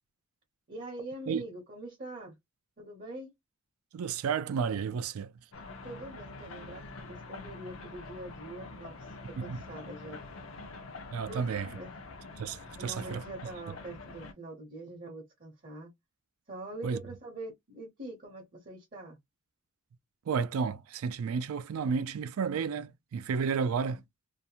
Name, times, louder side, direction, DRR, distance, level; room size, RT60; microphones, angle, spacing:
voice 1, 0.7-2.3 2.8-3.3 5.8-10.5 11.3-11.4 11.7-11.9 12.8-15.9 16.5-19.2, right 2 dB, 40° right, 0.7 m, -44 dB
voice 2, 3.9-5.3 9.4-9.6 11.1-11.7 12.4-13.2 16.8-17.0 20.3-24.0, right 6 dB, 75° right, 0.4 m, -32 dB
sound 1, 5.5-14.3, left 3 dB, 70° left, 0.6 m, -46 dB
2.5 x 2.1 x 2.8 m
head